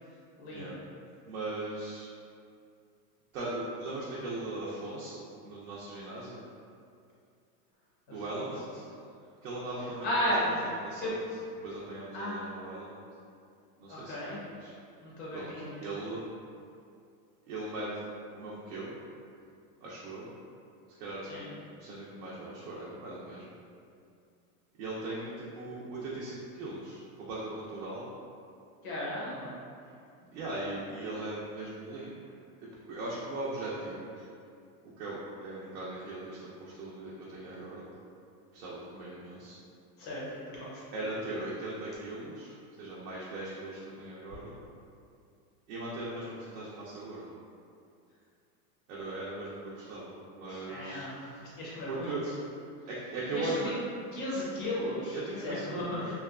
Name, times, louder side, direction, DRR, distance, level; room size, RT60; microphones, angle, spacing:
voice 1, 0.4-0.7 8.3-8.4 10.0-10.5 11.0-11.2 12.1-12.4 13.9-14.4 15.0-15.7 21.3-21.5 28.8-29.5 40.0-40.8 50.5-52.1 53.3-53.7 54.1-55.2 55.4-56.1, left 1 dB, 25° left, -7 dB, 0.4 m, -34 dB
voice 2, 1.2-2.1 3.3-6.4 8.1-8.9 9.4-13.0 13.8-14.7 15.3-16.2 17.5-18.0 18.3-19.0 19.8-20.3 21.0-21.2 21.7-23.5 24.8-28.1 30.3-32.1 32.9-34.1 35.0-37.8 38.5-39.6 40.9-44.5 45.7-47.3 48.9-51.1 51.9-52.3 52.9-53.7 55.1-56.1, right 2 dB, 70° right, -7 dB, 0.6 m, -39 dB
2.8 x 2.2 x 2.3 m, 2.4 s
supercardioid pair, 150°, 47 cm